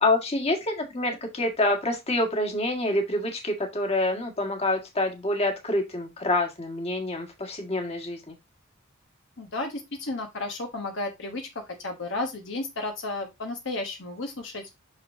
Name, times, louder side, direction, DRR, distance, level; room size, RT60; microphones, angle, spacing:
voice 1, 0.0-8.3, left 2 dB, 30° left, 1.7 m, -27 dB
voice 2, 9.4-14.7, left 2 dB, 60° left, 1.1 m, -33 dB
6.3 x 5.7 x 2.7 m
head